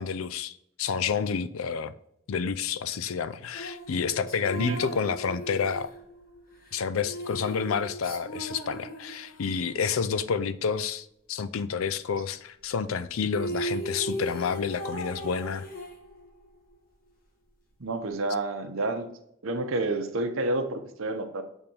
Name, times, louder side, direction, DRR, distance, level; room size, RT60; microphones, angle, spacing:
voice 1, 0.0-1.9 2.3-5.9 6.7-15.7, left 6 dB, 85° left, 0.5 m, -29 dB
sound 1, 3.5-9.7 13.0-13.1 13.3-16.5, equal, 45° left, 1.4 m, -37 dB
voice 2, 17.8-19.1 19.4-21.4, right 2 dB, 80° right, 0.9 m, -29 dB
6.8 x 3.6 x 4.4 m
head